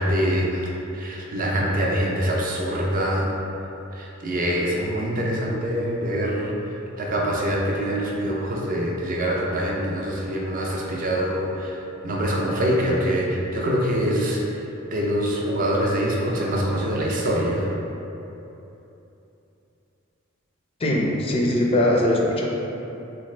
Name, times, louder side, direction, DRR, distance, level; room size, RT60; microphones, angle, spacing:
voice 1, 0.0-3.3 3.9-6.6 7.0-17.7, equal, 40° right, -2 dB, 0.5 m, -24 dB
voice 2, 20.8-22.5, left 1 dB, 30° left, -1 dB, 0.4 m, -21 dB
4.1 x 2.4 x 3.1 m, 3.0 s
head